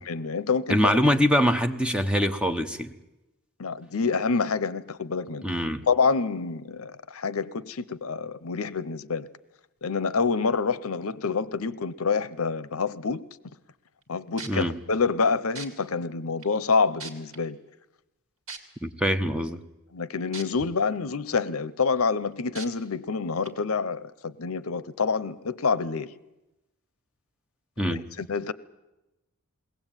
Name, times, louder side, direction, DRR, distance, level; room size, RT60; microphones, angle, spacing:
voice 1, 0.1-1.0 3.6-5.4 5.9-9.3 9.8-13.2 14.1-17.6 19.9-26.1 27.9-28.5, left 4 dB, 65° left, 0.8 m, -27 dB
voice 2, 0.7-2.9 5.4-5.8 14.4-14.8 18.8-19.6 27.8-28.0, equal, 5° right, 0.9 m, -24 dB
sound 1, 14.0-14.1 14.4-14.6 15.6-15.7 16.4-16.5 17.0-17.4 18.5-18.6 20.3-20.4 21.0-21.1 22.6-22.7 23.4-23.5, right 4 dB, 65° right, 2.8 m, -38 dB
21.5 x 18.0 x 9.0 m
head